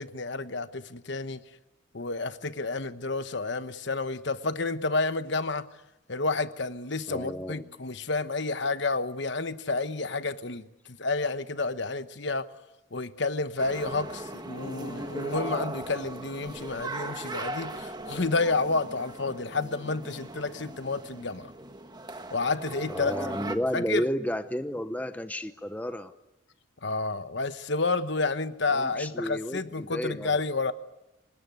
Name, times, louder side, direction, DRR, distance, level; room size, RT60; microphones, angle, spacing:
voice 1, 0.0-1.4 1.9-5.7 6.1-12.5 12.9-21.5 22.3-23.1 23.4-24.1 26.8-30.7, left 3 dB, 55° left, 11 dB, 1.1 m, -30 dB
voice 2, 7.1-7.7 22.9-26.1 28.7-30.4, equal, 5° left, 9 dB, 0.8 m, -32 dB
sound 1, 13.6-23.6, right 2 dB, 20° right, 1.3 m, -38 dB
25.5 x 20.5 x 9.4 m, 0.98 s
head